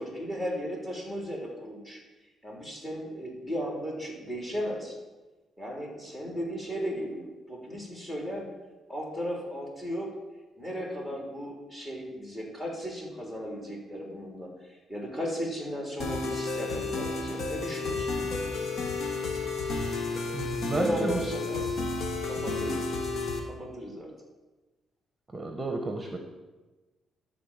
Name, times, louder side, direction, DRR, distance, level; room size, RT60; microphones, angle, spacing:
voice 1, 0.0-2.0 2.4-5.0 5.6-8.5 8.9-10.1 10.6-18.7 20.7-21.7 22.2-22.8 23.4-24.1, equal, 15° left, -1 dB, 3.4 m, -35 dB
sound 1, 16.0-23.4, left 3 dB, 65° left, 1.6 m, -32 dB
voice 2, 20.3-21.2 25.3-26.2, right 2 dB, 20° right, 4 dB, 1.1 m, -32 dB
13.0 x 4.3 x 7.4 m, 1.2 s
cardioid pair, 90°, 0 cm